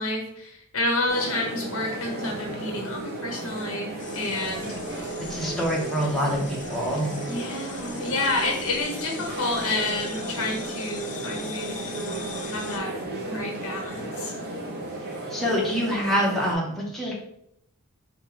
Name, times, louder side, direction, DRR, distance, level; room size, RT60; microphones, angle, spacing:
voice 1, 0.0-5.2 7.2-12.9 13.3-14.3, left 2 dB, 75° left, 0 dB, 1.1 m, -30 dB
sound 1, 1.1-16.5, right 2 dB, 45° right, 0.8 m, -34 dB
sound 2, 4.0-12.8, left 6 dB, 35° left, 0.4 m, -42 dB
voice 2, 5.3-7.2 15.3-17.1, equal, ahead, -4 dB, 0.8 m, -26 dB
4.3 x 2.2 x 3.7 m, 0.75 s
head